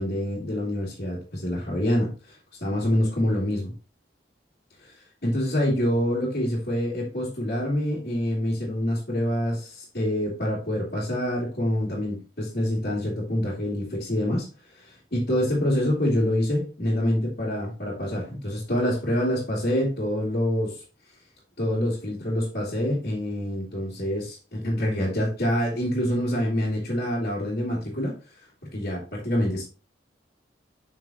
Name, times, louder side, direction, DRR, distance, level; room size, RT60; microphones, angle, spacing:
voice 1, 0.0-3.7 4.8-5.0 5.2-14.5 14.7-20.8 21.6-28.4 28.7-29.7, equal, 55° left, -8 dB, 2.9 m, -26 dB
7.4 x 6.1 x 3.0 m, 0.35 s
head